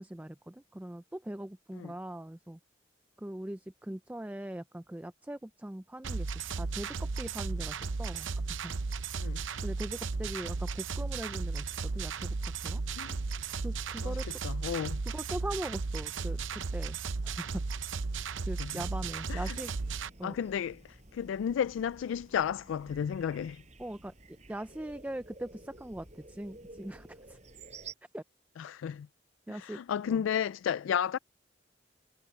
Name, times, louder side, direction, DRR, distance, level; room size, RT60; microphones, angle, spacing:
voice 1, 0.0-2.6 3.2-6.3 6.6-8.3 8.6-8.7 9.2-9.3 9.6-12.8 13.6-14.2 15.1-17.0 17.2-17.6 18.5-19.7 20.2-20.4 23.8-27.4 28.1-28.2 29.5-29.8 30.1-30.2, right 1 dB, 10° right, 0.4 m, -41 dB
sound 1, 6.0-20.1, right 4 dB, 80° right, 0.7 m, -35 dB
voice 2, 14.0-15.0 18.6-18.8 19.3-19.6 20.2-23.6 28.6-29.1 29.5-31.2, left 8 dB, 85° left, 0.3 m, -33 dB
sound 2, 18.8-27.9, right 3 dB, 35° right, 5.7 m, -52 dB
head